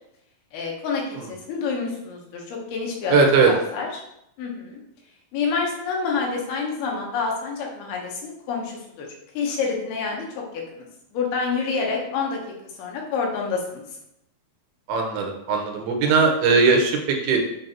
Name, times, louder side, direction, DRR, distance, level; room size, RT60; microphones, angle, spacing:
voice 1, 0.5-4.0 4.4-4.8 5.3-9.1 9.3-10.9 11.1-12.4 12.8-13.8 16.0-16.2, left 5 dB, 85° left, 0 dB, 3.2 m, -28 dB
voice 2, 3.1-3.5 14.9-17.4, right 4 dB, 85° right, 2 dB, 2.9 m, -19 dB
7.2 x 4.0 x 4.4 m, 0.81 s
omnidirectional pair, 4.3 m